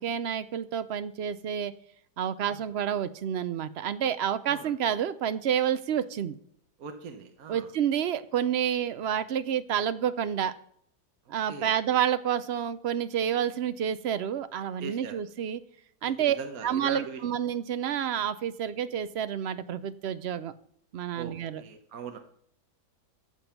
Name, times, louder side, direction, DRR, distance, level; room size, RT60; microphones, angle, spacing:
voice 1, 0.0-1.7 2.2-6.4 7.5-10.5 11.3-15.6 16.0-16.4 16.6-20.5 20.9-21.6, right 9 dB, 75° right, 13 dB, 0.5 m, -29 dB
voice 2, 6.8-7.7 11.3-11.8 14.8-15.2 16.0-17.2 21.1-22.2, right 6 dB, 60° right, 6 dB, 1.4 m, -41 dB
14.0 x 7.0 x 5.8 m, 0.66 s
omnidirectional pair, 1.8 m